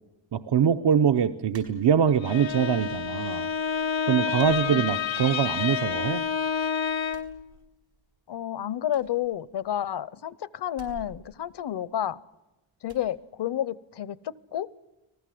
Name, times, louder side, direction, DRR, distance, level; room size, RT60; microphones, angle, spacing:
voice 1, 0.3-3.5 4.1-6.2, right 8 dB, 65° right, 9 dB, 0.8 m, -23 dB
sound 1, 1.5-2.4 2.8-3.5 3.7-3.9 4.3-5.5 5.8-6.6 7.0-8.2 8.4-8.5 8.8-10.0 10.7-12.3 12.8-13.1, right 5 dB, 85° right, 5.2 m, -52 dB
Bowed string instrument, 2.1-7.4, left 7 dB, 85° left, 1.2 m, -29 dB
voice 2, 8.3-12.2 12.8-14.7, left 11 dB, 65° left, 20 dB, 0.8 m, -30 dB
29.5 x 19.5 x 7.7 m, 1.0 s
wide cardioid pair, 160°, 44 cm